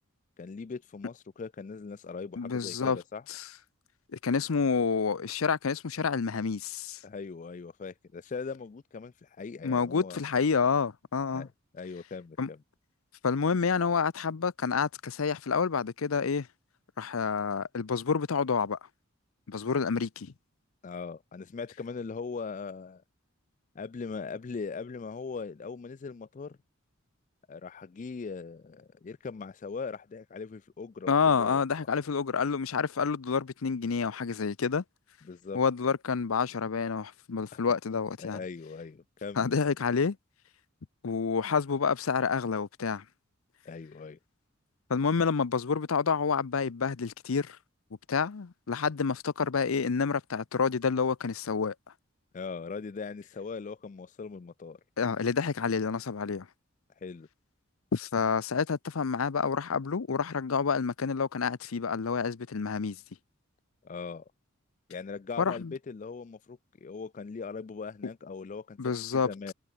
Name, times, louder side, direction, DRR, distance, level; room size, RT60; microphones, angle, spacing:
voice 1, 0.4-3.2 7.0-10.2 11.3-11.5 11.7-12.6 20.8-23.0 23.8-26.6 27.5-31.6 35.2-35.6 37.5-37.6 38.2-39.6 43.7-44.2 52.3-54.8 57.0-57.3 63.8-64.3 64.9-69.5, left 5 dB, 35° left, 0.4 m, -40 dB
voice 2, 2.4-3.0 3.3-3.5 4.1-7.0 9.6-11.5 12.4-12.5 13.2-16.5 17.0-18.8 19.5-20.3 31.1-34.8 35.5-38.4 39.4-40.2 41.0-43.0 44.9-47.6 48.1-51.7 55.0-56.5 57.9-63.0 65.4-65.7 68.8-69.3, left 5 dB, 85° left, 0.6 m, -28 dB
head